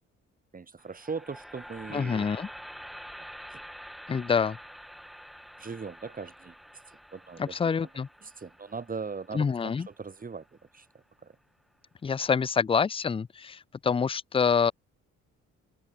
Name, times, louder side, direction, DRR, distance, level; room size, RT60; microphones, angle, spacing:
voice 1, 0.5-2.3 3.5-3.6 5.6-7.9 8.2-11.4, right 5 dB, 30° right, 2.1 m, -40 dB
sound 1, 0.8-10.9, equal, ahead, 1.3 m, -47 dB
voice 2, 1.9-2.5 4.1-4.6 7.4-8.1 9.3-9.9 12.0-14.7, left 6 dB, 20° left, 0.4 m, -26 dB
cardioid pair, 90°, 30 cm